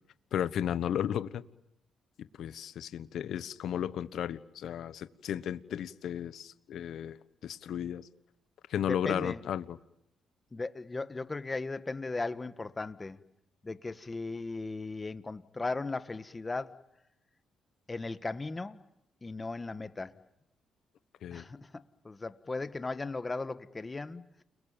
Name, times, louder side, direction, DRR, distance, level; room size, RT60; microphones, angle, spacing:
voice 1, 0.3-1.4 2.4-7.2 7.4-8.1 8.7-9.8 21.2-21.4, left 10 dB, 70° left, 1.2 m, -34 dB
voice 2, 8.8-9.4 10.5-13.2 13.6-16.8 17.9-18.8 19.2-20.2 21.3-24.2, left 3 dB, 25° left, 1.5 m, -37 dB
30.0 x 21.5 x 9.1 m
cardioid pair, 90°, 0 cm